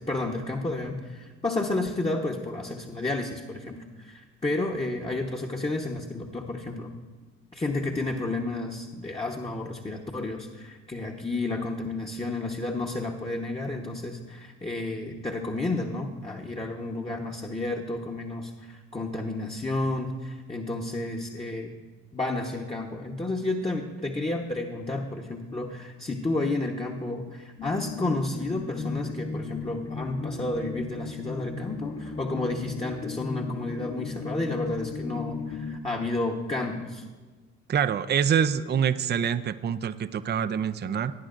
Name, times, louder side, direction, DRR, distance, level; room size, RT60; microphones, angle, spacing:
voice 1, 0.0-6.9 7.5-21.7 22.1-37.1, left 2 dB, 15° left, -1 dB, 1.1 m, -31 dB
sound 1, 27.6-35.8, left 4 dB, 40° left, 1.4 m, -36 dB
voice 2, 37.7-41.1, right 8 dB, 25° right, 12 dB, 0.5 m, -25 dB
17.5 x 9.6 x 2.6 m, 1.3 s
hypercardioid pair, 55°, 38 cm